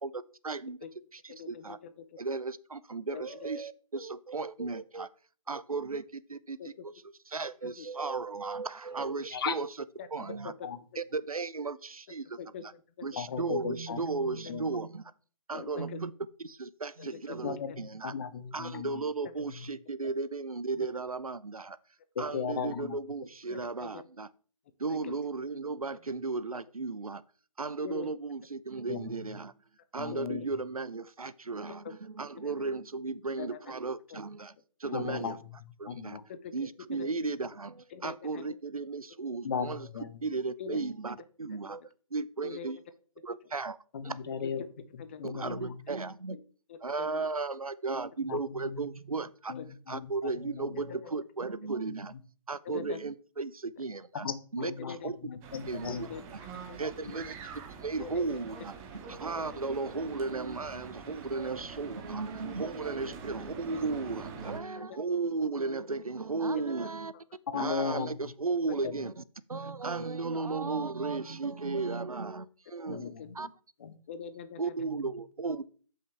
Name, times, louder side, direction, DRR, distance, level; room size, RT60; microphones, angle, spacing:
voice 1, 0.0-0.8 1.1-1.8 2.2-5.1 5.5-6.9 7.3-9.7 10.1-10.5 11.0-12.4 13.0-15.1 15.5-16.1 16.4-18.1 18.5-21.8 22.2-24.3 24.8-27.2 27.6-29.5 29.9-34.5 34.8-35.4 35.8-36.2 36.5-39.9 40.2-41.8 42.1-42.8 43.2-43.8 44.0-44.2 45.2-46.4 46.8-49.5 49.9-52.1 52.5-54.3 54.5-55.2 55.7-56.1 56.8-57.4 57.8-58.7 59.1-67.1 67.5-69.2 69.5-73.1 73.3-73.5 74.6-75.6, right 4 dB, 85° right, 0.6 m, -35 dB
voice 2, 1.3-2.0 3.1-3.5 6.6-6.8 7.6-7.9 10.0-10.6 12.4-13.1 14.4-14.5 15.6-16.0 17.0-17.2 17.7-17.8 20.8-20.9 23.5-24.0 24.9-25.1 27.8-28.1 30.1-30.5 31.8-31.9 32.4-32.5 33.4-33.7 34.1-34.2 36.3-37.1 37.9-38.5 40.6-40.8 42.4-42.7 44.4-44.7 45.0-45.2 46.3-46.4 46.7-47.2 48.3-48.4 49.4-49.7 50.8-51.1 52.6-53.0 54.6-55.1 56.0-56.2 56.7-57.2 58.0-58.4 59.4-59.6 64.8-64.9 68.7-68.9 72.9-73.3 74.1-74.9, left 7 dB, 20° left, 0.5 m, -44 dB
voice 3, 13.2-14.0 14.5-14.6 15.5-15.6 17.4-19.0 19.5-19.7 22.1-23.0 28.9-29.2 30.0-30.4 34.9-35.6 35.9-36.2 39.4-40.2 43.9-44.6 44.9-45.8 48.3-48.9 49.5-50.8 51.9-52.0 54.2-56.2 67.5-68.3 68.8-68.9 70.0-70.1 72.9-73.5 73.8-73.9, left 6 dB, 40° left, 1.0 m, -37 dB
sound 1, 55.4-64.6, right 5 dB, 15° right, 0.9 m, -45 dB
12.5 x 5.7 x 3.3 m
figure-of-eight pair, 145°, 18 cm